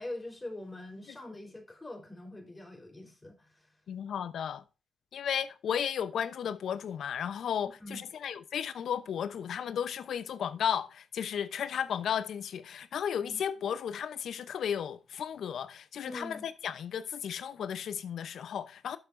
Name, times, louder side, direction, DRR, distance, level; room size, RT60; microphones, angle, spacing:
voice 1, 0.0-3.7 7.8-8.0 13.2-13.4 16.0-16.5, left 1 dB, 25° left, 3.9 m, -43 dB
voice 2, 3.9-4.6 5.1-19.0, left 8 dB, 75° left, 0.7 m, -34 dB
12.0 x 7.0 x 2.6 m
supercardioid pair, 60°, 0 cm